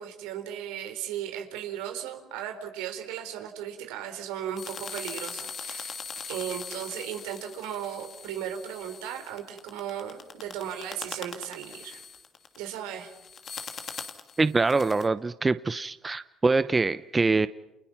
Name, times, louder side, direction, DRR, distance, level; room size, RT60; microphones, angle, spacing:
voice 1, 0.0-6.0 6.3-12.0 12.6-13.1, right 9 dB, 85° right, 6 dB, 3.9 m, -36 dB
sound 1, 4.6-15.1, left 6 dB, 50° left, 2.6 m, -41 dB
voice 2, 14.4-17.5, right 3 dB, 25° right, 13 dB, 0.8 m, -24 dB
30.0 x 29.0 x 5.9 m, 0.97 s
supercardioid pair, 75°, 0 cm